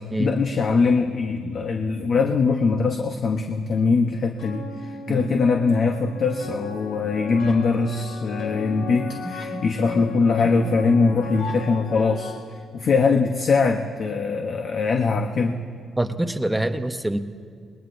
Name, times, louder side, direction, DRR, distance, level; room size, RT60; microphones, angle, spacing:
voice 1, 0.2-12.3 12.7-15.6, left 4 dB, 45° left, 3 dB, 0.8 m, -22 dB
sound 1, 4.4-12.4, left 4 dB, 80° left, 2.1 m, -35 dB
voice 2, 9.2-9.6 9.9-10.1 11.1-11.2 16.0-17.2, right 1 dB, 5° right, 9 dB, 0.6 m, -26 dB
27.5 x 20.5 x 2.6 m, 2.2 s
cardioid pair, 165°, 0 cm